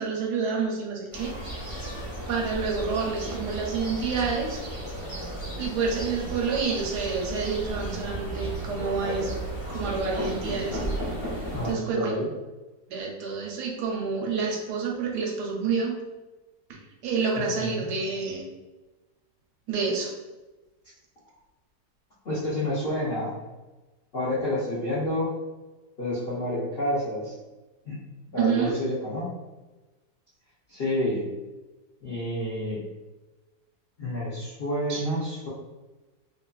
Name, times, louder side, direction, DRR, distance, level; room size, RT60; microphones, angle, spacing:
voice 1, 0.0-1.3 2.3-4.6 5.6-9.5 9.7-11.0 11.3-12.2 12.9-16.0 16.7-18.4 19.7-20.1 28.4-28.7 34.9-35.0, right 5 dB, 75° right, 0 dB, 1.1 m, -28 dB
sound 1, 1.1-11.7, right 1 dB, 25° left, 0.9 m, -34 dB
voice 2, 11.5-12.3 17.6-17.8 22.2-23.3 24.1-25.3 26.0-27.3 27.8-28.0 28.3-29.3 30.7-31.3 32.0-32.8 34.0-35.5, left 1 dB, 65° left, -9 dB, 0.6 m, -29 dB
2.9 x 2.7 x 2.3 m, 1.1 s
omnidirectional pair, 1.9 m